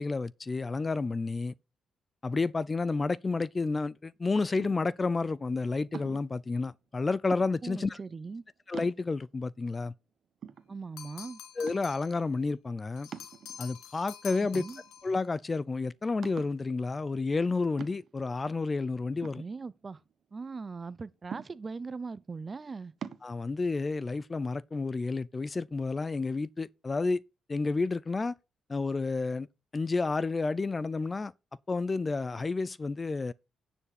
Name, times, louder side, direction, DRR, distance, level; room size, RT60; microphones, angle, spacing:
voice 1, 0.0-1.5 2.2-8.0 8.7-9.9 11.6-13.1 13.6-14.6 15.0-19.4 23.2-27.2 27.5-28.4 28.7-29.5 29.7-31.3 31.7-33.3, left 3 dB, 25° left, 0.4 m, -30 dB
sound 1, 4.6-5.0 5.9-6.4 7.3-7.8 8.3-8.4 8.7-9.4 9.9-10.0 10.4-11.2 11.7-12.1 13.1-13.8 14.5-15.2 15.5-15.6 16.2-16.7 17.8-18.3 19.2-20.1 21.3-21.9 23.0-23.3, right 7 dB, 55° right, 1.0 m, -44 dB
voice 2, 7.6-8.4 10.7-11.4 14.5-14.8 19.4-20.0 20.3-22.9, right 4 dB, 30° right, 0.6 m, -40 dB
sound 2, 11.0-12.2 13.0-15.1, left 8 dB, 85° left, 1.6 m, -47 dB
9.8 x 7.1 x 4.2 m
cardioid pair, 90°, 0 cm